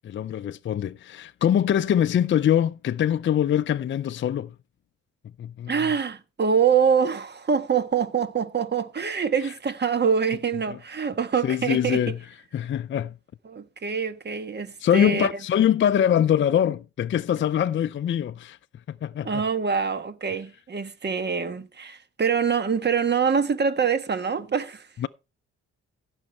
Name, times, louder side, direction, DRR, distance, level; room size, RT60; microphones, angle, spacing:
voice 1, 0.0-4.5 5.4-5.7 11.4-12.2 12.5-13.1 14.8-18.6 18.9-19.4 25.0-25.1, left 9 dB, 40° left, 0.5 m, -23 dB
voice 2, 5.7-12.0 13.4-15.3 19.2-24.9, right 6 dB, 35° right, 1.4 m, -25 dB
15.5 x 6.4 x 4.3 m
cardioid pair, 90°, 30 cm